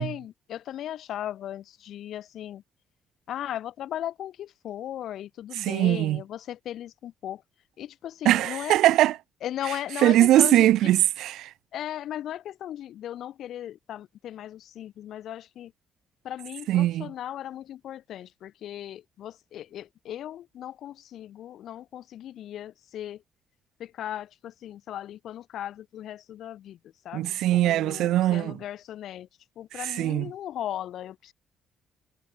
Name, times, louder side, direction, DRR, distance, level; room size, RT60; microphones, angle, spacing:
voice 1, 0.0-2.6 3.3-7.4 7.8-8.7 9.4-10.7 11.7-15.7 16.2-23.2 23.8-26.8 27.0-29.3 29.6-31.3, left 11 dB, 75° left, 1.3 m, -37 dB
voice 2, 5.5-6.2 8.2-9.2 9.6-11.5 16.7-17.1 27.1-28.6 29.7-30.3, right 14 dB, 85° right, 0.4 m, -22 dB
cardioid pair, 90°, 0 cm